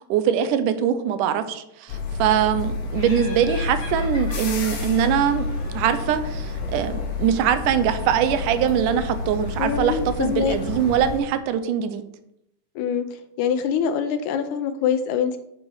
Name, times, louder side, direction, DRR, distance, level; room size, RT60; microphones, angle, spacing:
voice 1, 0.0-5.5 5.7-12.0, right 9 dB, 80° right, 11 dB, 2.3 m, -22 dB
sound 1, 1.9-11.2, left 3 dB, 60° left, 2.5 m, -29 dB
Laughter, 2.9-6.3, left 2 dB, 30° left, 2.4 m, -42 dB
voice 2, 9.6-10.6 12.8-13.1 13.4-15.4, left 7 dB, 75° left, 9 dB, 1.9 m, -24 dB
9.7 x 5.9 x 4.7 m, 0.79 s
omnidirectional pair, 3.7 m